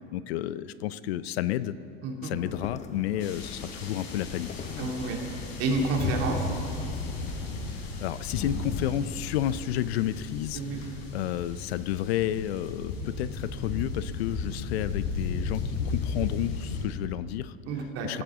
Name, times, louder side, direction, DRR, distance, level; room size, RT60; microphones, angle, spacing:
voice 1, 0.1-1.8 2.2-4.9 7.7-17.6 18.0-18.2, left 12 dB, 85° left, 16 dB, 0.6 m, -31 dB
voice 2, 2.0-2.4 4.8-5.2 5.6-6.5 10.5-10.8 17.7-18.2, right 3 dB, 50° right, 0 dB, 2.5 m, -29 dB
sound 1, 2.3-7.4, left 5 dB, 25° left, 0.7 m, -44 dB
sound 2, 3.2-16.9, left 4 dB, 55° left, 3.4 m, -35 dB
15.0 x 15.0 x 3.7 m, 2.6 s
supercardioid pair, 110°, 31 cm